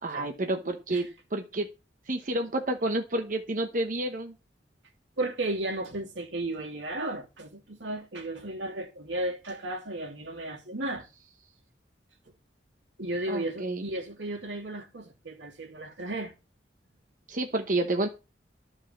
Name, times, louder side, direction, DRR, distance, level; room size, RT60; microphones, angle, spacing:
voice 1, 0.0-1.1 1.3-1.7 2.1-4.3 13.3-13.8 17.3-18.1, right 2 dB, 45° right, 1.0 m, -29 dB
voice 2, 5.2-11.1 13.0-16.3, right 1 dB, 75° right, 2.9 m, -34 dB
12.0 x 5.4 x 7.2 m
head